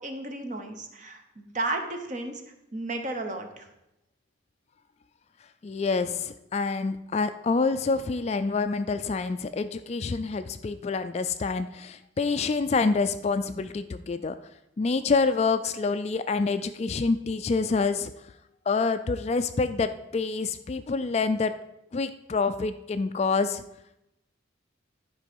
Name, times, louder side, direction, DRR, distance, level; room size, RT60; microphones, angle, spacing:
voice 1, 0.0-2.4 2.7-3.7, right 2 dB, 40° right, 5 dB, 1.0 m, -33 dB
voice 2, 5.6-14.4 14.8-18.1 18.7-21.5 21.9-23.6, left 4 dB, 35° left, 11 dB, 0.3 m, -27 dB
11.0 x 4.8 x 5.3 m, 0.88 s
head